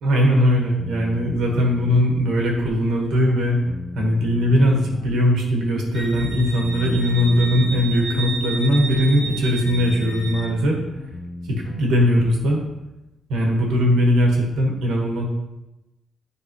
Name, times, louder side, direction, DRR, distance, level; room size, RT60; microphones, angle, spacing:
voice 1, 0.0-3.6 3.9-10.8 11.7-12.6 13.3-15.2, equal, 85° right, 0 dB, 1.4 m, -19 dB
sound 1, 0.8-12.1, left 3 dB, 35° left, 0.6 m, -35 dB
Wind instrument woodwind instrument, 5.9-10.5, right 4 dB, 10° right, 1.6 m, -32 dB
9.9 x 3.3 x 3.0 m, 0.97 s
cardioid pair, 155°, 0 cm